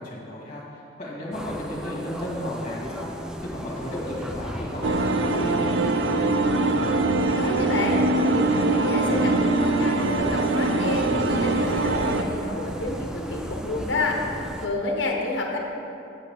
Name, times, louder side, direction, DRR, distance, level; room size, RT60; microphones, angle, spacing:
voice 1, 0.0-5.8, left 1 dB, 35° left, -4 dB, 1.9 m, -34 dB
sound 1, 1.3-14.7, equal, 5° right, 0.4 m, -36 dB
sound 2, 3.6-9.0, equal, 30° right, 1.1 m, -42 dB
sound 3, 4.8-12.2, right 2 dB, 75° right, 0.5 m, -23 dB
voice 2, 7.3-15.6, left 2 dB, 70° left, 0 dB, 0.9 m, -29 dB
8.3 x 8.1 x 3.5 m, 2.8 s
head